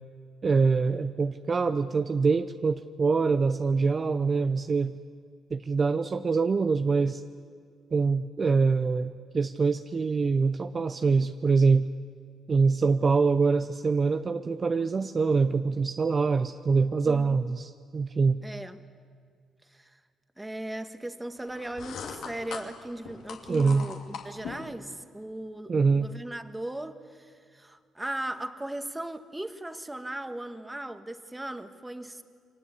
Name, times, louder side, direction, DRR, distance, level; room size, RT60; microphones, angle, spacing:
voice 1, 0.4-4.9 5.5-7.2 7.9-11.9 12.5-18.4 23.5-23.9 25.7-26.1, right 4 dB, 35° right, 10 dB, 0.7 m, -24 dB
voice 2, 17.1-17.4 18.4-18.8 19.7-20.0 20.4-32.2, right 1 dB, 10° right, 9 dB, 1.4 m, -38 dB
sound 1, 21.5-24.7, left 6 dB, 75° left, 2.8 m, -41 dB
28.0 x 23.0 x 8.4 m, 2.1 s
cardioid pair, 90°, 0 cm